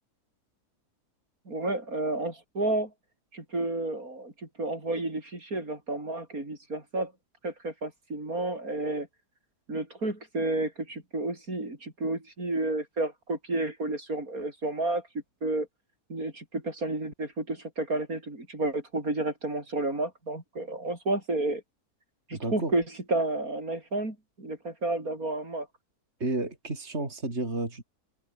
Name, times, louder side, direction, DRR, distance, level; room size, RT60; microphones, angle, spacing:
voice 1, 1.5-2.9 3.3-7.1 7.4-9.1 9.7-15.1 15.4-15.7 16.1-21.6 22.3-25.7, right 2 dB, 60° right, 6.3 m, -31 dB
voice 2, 22.3-22.7 26.2-27.8, right 2 dB, 45° right, 4.4 m, -31 dB
omnidirectional pair, 1.7 m